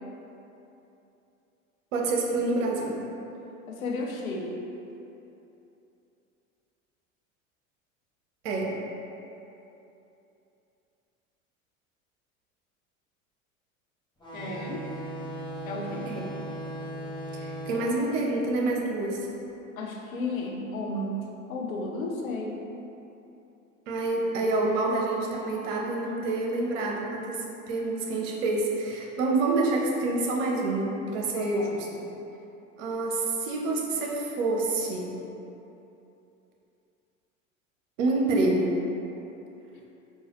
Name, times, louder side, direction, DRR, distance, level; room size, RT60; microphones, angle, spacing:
voice 1, 1.9-2.9 8.4-8.7 16.1-16.2 17.3-19.2 23.9-32.1 32.8-35.1 38.0-38.7, right 2 dB, 65° right, -1 dB, 0.7 m, -27 dB
voice 2, 3.7-4.6 14.3-14.9 15.7-16.2 19.8-22.6 31.3-31.7, left 2 dB, 85° left, 0 dB, 0.5 m, -33 dB
sound 1, 14.2-19.4, right 1 dB, 10° left, 1.0 m, -38 dB
3.9 x 2.3 x 2.9 m, 2.9 s
figure-of-eight pair, 75°, 40 cm